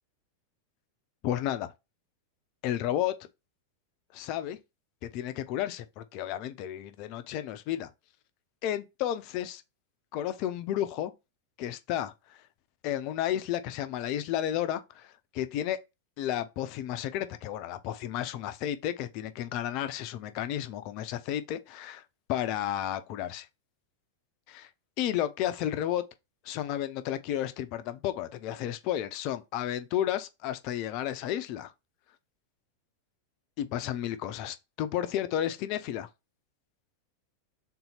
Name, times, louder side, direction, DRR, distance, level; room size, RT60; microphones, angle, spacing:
voice 1, 1.2-1.7 2.6-3.1 4.1-4.6 5.1-7.9 8.6-9.6 10.1-11.1 11.6-12.4 12.8-15.8 16.2-22.0 22.3-23.5 24.5-24.7 25.0-26.0 26.4-31.7 33.6-36.1, left 11 dB, 45° left, 0.5 m, -32 dB
3.7 x 2.8 x 4.2 m
figure-of-eight pair, 90°, 0 cm